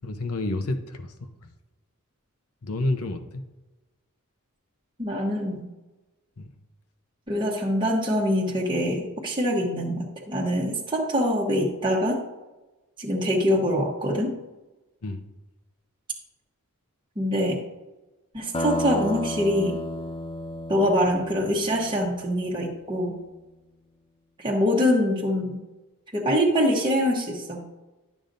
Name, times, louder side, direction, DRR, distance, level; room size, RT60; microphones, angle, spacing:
voice 1, 0.0-1.5 2.6-3.4 6.4-6.5 15.0-15.2, left 2 dB, 85° left, 7 dB, 0.8 m, -30 dB
voice 2, 5.0-5.7 7.3-12.2 13.0-14.3 17.2-17.6 18.3-19.8 20.7-23.2 24.4-25.6 26.1-27.7, equal, 20° right, -3 dB, 1.0 m, -24 dB
sound 1, 18.5-22.8, left 1 dB, 25° left, 0.5 m, -32 dB
11.5 x 7.1 x 2.6 m, 1.1 s
head